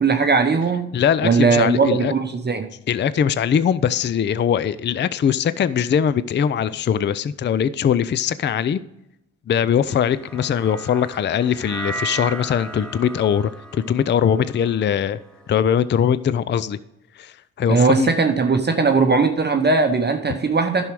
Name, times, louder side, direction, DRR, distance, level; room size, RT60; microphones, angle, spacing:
voice 1, 0.0-0.9 1.2-2.7 17.7-20.9, right 4 dB, 25° right, 0.9 m, -19 dB
voice 2, 0.9-2.1 2.9-8.8 9.5-15.2 15.5-16.8 17.2-18.1, left 8 dB, 30° left, 0.5 m, -21 dB
sound 1, 9.9-16.2, right 2 dB, ahead, 1.2 m, -36 dB
10.5 x 6.3 x 4.8 m
supercardioid pair, 60°, 39 cm